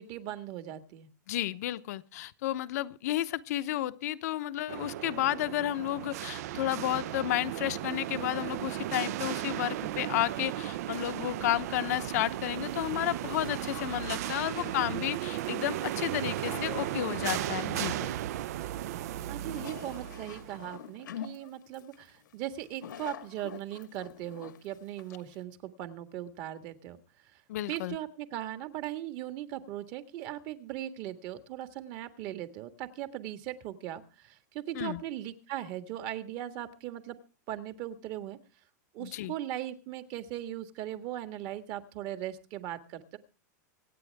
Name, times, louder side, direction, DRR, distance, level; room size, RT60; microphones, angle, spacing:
voice 1, 0.0-1.1 19.3-27.0 27.7-37.2 37.5-38.4 38.9-43.2, right 12 dB, 35° right, 1.7 m, -39 dB
voice 2, 1.3-18.0 27.5-28.0 34.7-35.0 39.0-39.3, left 14 dB, 60° left, 0.9 m, -32 dB
sound 1, 4.7-20.7, right 13 dB, 55° right, 0.6 m, -35 dB
sound 2, 13.3-25.4, left 9 dB, 90° left, 1.6 m, -47 dB
25.0 x 9.3 x 3.5 m
supercardioid pair, 155°, 10 cm